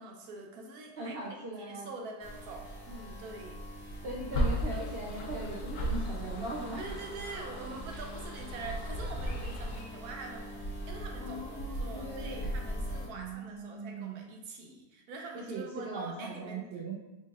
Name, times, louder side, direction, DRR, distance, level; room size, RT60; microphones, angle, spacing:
voice 1, 0.0-3.6 6.8-16.9, right 3 dB, 80° right, 1 dB, 1.2 m, -45 dB
voice 2, 1.0-2.0 4.0-6.8 11.2-12.4 13.1-14.2 15.5-16.9, right 2 dB, 65° right, -3 dB, 0.6 m, -39 dB
sound 1, 2.2-13.1, right 1 dB, 20° left, 1.2 m, -41 dB
sound 2, 4.3-9.8, equal, 55° left, 0.7 m, -36 dB
4.1 x 4.1 x 2.4 m, 1.0 s
omnidirectional pair, 1.6 m